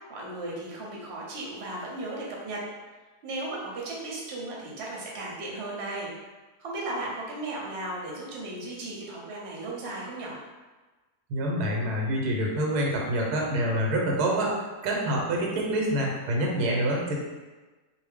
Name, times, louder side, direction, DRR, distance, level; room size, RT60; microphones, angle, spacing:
voice 1, 0.1-2.6 3.2-6.1 6.6-10.4, right 2 dB, 55° right, -3 dB, 0.8 m, -35 dB
voice 2, 11.3-14.5 14.8-17.1, right 1 dB, 90° right, -2 dB, 1.2 m, -26 dB
2.6 x 2.0 x 3.4 m, 1.2 s
omnidirectional pair, 1.6 m